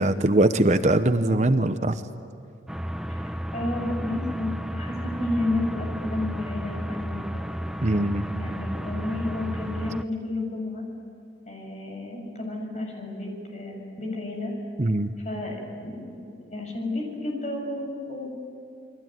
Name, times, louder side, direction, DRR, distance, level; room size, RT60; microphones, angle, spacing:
voice 1, 0.0-2.0 7.8-8.2 14.8-15.1, right 1 dB, 40° right, 9 dB, 0.9 m, -21 dB
sound 1, 2.7-10.0, equal, 5° right, 0.6 m, -32 dB
voice 2, 3.1-7.6 8.4-10.8 11.5-14.5 15.2-15.6 15.8-16.1 16.5-18.3, left 2 dB, 40° left, 1 dB, 7.0 m, -31 dB
29.0 x 22.0 x 9.3 m, 2.6 s
head